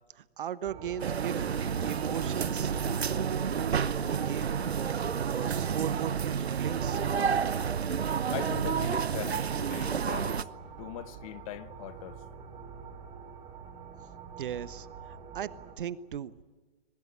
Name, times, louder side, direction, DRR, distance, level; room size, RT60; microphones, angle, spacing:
voice 1, 0.1-1.4 1.8-7.0 14.4-15.5 15.8-16.3, right 9 dB, 55° right, 1.1 m, -38 dB
sound 1, 0.6-15.7, right 6 dB, 20° right, 4.6 m, -45 dB
sound 2, 1.0-10.4, right 7 dB, 80° right, 0.9 m, -30 dB
voice 2, 8.0-10.5 10.8-12.2, left 13 dB, 35° left, 1.0 m, -41 dB
23.0 x 20.5 x 9.2 m
figure-of-eight pair, 130°, 31 cm